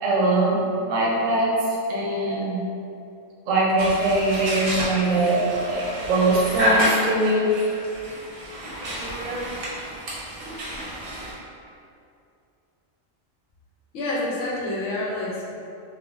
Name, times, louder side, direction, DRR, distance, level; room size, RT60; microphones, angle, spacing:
voice 1, 0.0-1.5 1.9-2.6 3.5-5.8 6.1-7.5, right 2 dB, 85° right, -3 dB, 1.0 m, -22 dB
sound 1, 3.8-11.3, equal, 55° right, 0.7 m, -29 dB
voice 2, 13.9-15.4, left 2 dB, 80° left, -5 dB, 1.0 m, -28 dB
3.4 x 2.2 x 2.3 m, 2.5 s
omnidirectional pair, 1.3 m